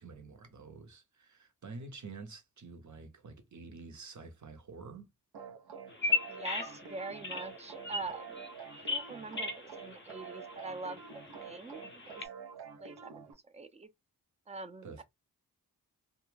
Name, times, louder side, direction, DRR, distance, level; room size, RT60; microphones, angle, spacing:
voice 1, 0.0-5.1 14.8-15.0, right 4 dB, 50° right, 0.8 m, -48 dB
sound 1, 5.3-13.3, right 6 dB, 85° right, 0.7 m, -48 dB
Bird vocalization bird call bird song, 5.9-12.2, left 4 dB, 30° left, 0.6 m, -38 dB
voice 2, 6.3-8.5 8.8-11.0 11.4-12.3 12.8-13.9 14.5-15.0, right 3 dB, 20° right, 0.4 m, -44 dB
2.3 x 2.0 x 3.2 m
cardioid pair, 55°, 38 cm